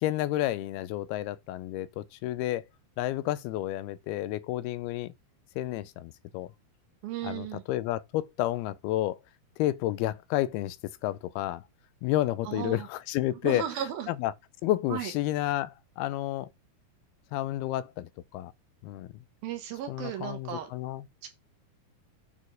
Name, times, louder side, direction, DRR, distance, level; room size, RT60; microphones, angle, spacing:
voice 1, 0.0-2.6 3.0-5.1 5.6-6.5 7.2-9.2 9.6-10.8 11.0-11.6 12.0-13.6 14.1-14.3 14.6-16.5 17.3-18.5 18.8-19.1 19.9-21.0, left 14 dB, 90° left, 2.6 m, -30 dB
voice 2, 7.0-7.6 12.4-12.9 13.4-14.1 14.9-15.1 19.4-20.7 21.2-21.3, right 10 dB, 75° right, 2.9 m, -35 dB
9.2 x 4.3 x 4.7 m
omnidirectional pair, 4.4 m